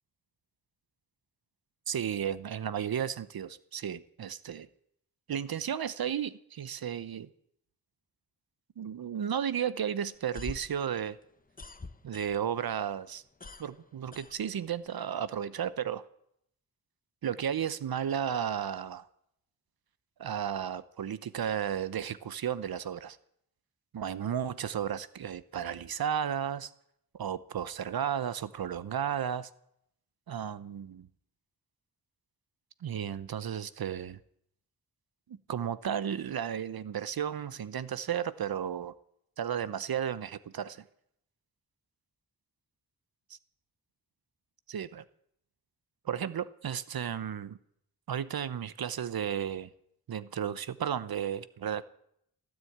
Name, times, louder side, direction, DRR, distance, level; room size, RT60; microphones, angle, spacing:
voice 1, 1.9-4.7 5.3-7.3 8.8-11.2 12.0-13.2 13.6-16.0 17.2-19.1 20.2-23.2 23.9-26.7 27.1-29.5 30.3-31.1 32.8-34.2 35.3-38.9 39.4-40.8 43.3-43.4 44.7-45.0 46.0-47.6 48.1-49.7 50.1-51.8, right 8 dB, 70° right, 16 dB, 0.8 m, -33 dB
sound 1, 10.1-12.7 13.0-14.9, left 3 dB, 20° left, 0.9 m, -45 dB
16.0 x 9.7 x 8.5 m, 0.73 s
wide cardioid pair, 105°, 38 cm